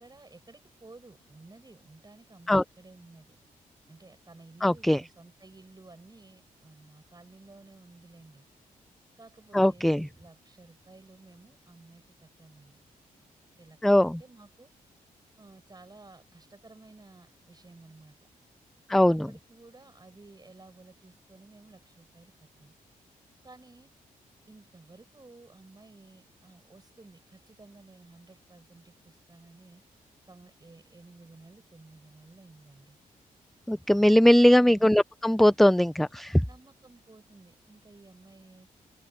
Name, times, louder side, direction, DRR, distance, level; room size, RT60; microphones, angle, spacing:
voice 1, 0.0-3.4 3.9-8.5 9.2-12.8 13.6-14.7 15.4-18.2 19.1-22.7 23.4-23.9 24.5-29.8 30.2-33.0 34.6-34.9 36.4-38.7, right 3 dB, 25° right, 7.9 m, -54 dB
voice 2, 4.6-5.0 9.5-10.1 13.8-14.2 18.9-19.3 33.7-36.4, left 1 dB, ahead, 0.4 m, -20 dB
cardioid pair, 65°, 15 cm